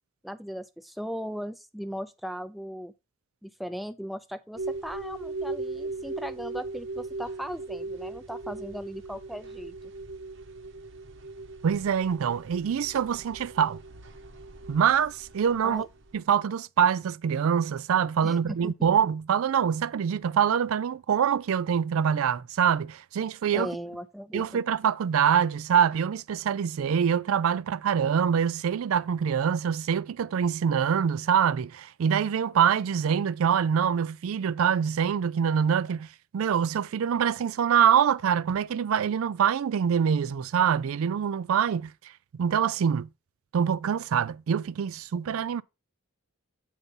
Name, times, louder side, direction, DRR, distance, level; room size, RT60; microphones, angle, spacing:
voice 1, 0.2-2.9 3.4-9.7 15.6-15.9 18.2-18.9 23.5-24.6, equal, ahead, 0.4 m, -38 dB
sound 1, 4.6-16.2, right 3 dB, 60° right, 0.9 m, -39 dB
voice 2, 11.6-13.8 14.7-15.9 16.1-23.7 24.3-36.1 36.3-41.9 42.4-43.1 43.5-45.6, right 7 dB, 75° right, 0.3 m, -25 dB
8.2 x 4.0 x 5.3 m
head